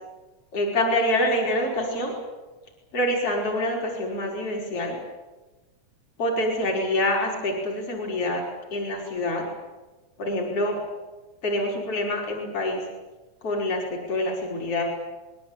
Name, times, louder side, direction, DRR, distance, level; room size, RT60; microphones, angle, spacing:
voice 1, 0.5-2.1 2.9-5.0 6.2-8.4 8.7-9.4 10.2-10.8 11.4-12.8 13.4-14.8, left 1 dB, 45° left, 0 dB, 6.0 m, -26 dB
25.0 x 21.5 x 8.9 m, 1.2 s
omnidirectional pair, 3.7 m